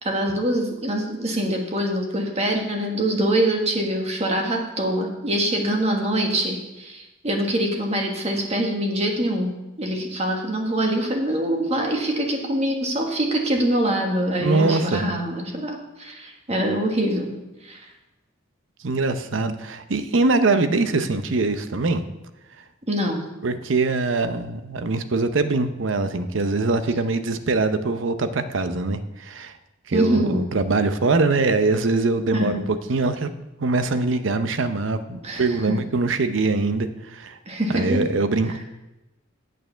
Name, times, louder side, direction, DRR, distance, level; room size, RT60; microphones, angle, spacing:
voice 1, 0.0-9.5 9.8-17.3 17.6-17.8 22.9-23.2 29.9-30.5 32.3-32.6 35.2-35.5 37.5-38.0, right 1 dB, 35° right, 2 dB, 1.5 m, -24 dB
voice 2, 14.4-15.0 18.8-22.0 23.4-29.5 29.9-32.6 32.9-33.3 33.6-37.4 37.7-38.6, right 3 dB, 70° right, 10 dB, 0.7 m, -23 dB
9.1 x 6.7 x 5.6 m, 1.0 s
head